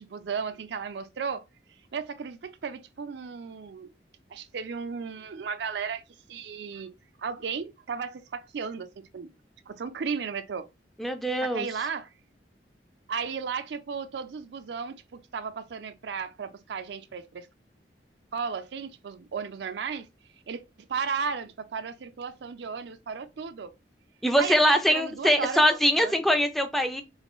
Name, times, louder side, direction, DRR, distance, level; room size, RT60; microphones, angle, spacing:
voice 1, 0.0-1.4 1.9-3.9 4.3-6.0 6.3-6.9 7.2-9.3 9.7-10.7 11.4-12.1 13.1-17.5 18.3-20.1 20.5-20.6 20.9-23.7 24.4-25.6 26.0-26.2, right 6 dB, 75° right, 0.4 m, -34 dB
voice 2, 11.0-11.7 24.2-27.0, equal, ahead, 0.3 m, -23 dB
3.1 x 2.6 x 3.0 m
head